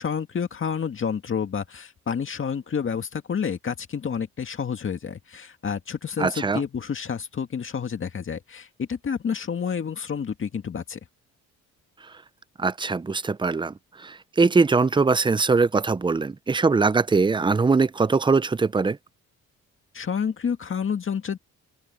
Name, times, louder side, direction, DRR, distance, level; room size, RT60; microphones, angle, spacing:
voice 1, 0.0-11.0 19.9-21.4, left 7 dB, 40° left, 2.1 m, -29 dB
voice 2, 6.2-6.6 12.6-13.7 14.0-19.0, right 4 dB, 15° right, 0.6 m, -21 dB
cardioid pair, 90°, 30 cm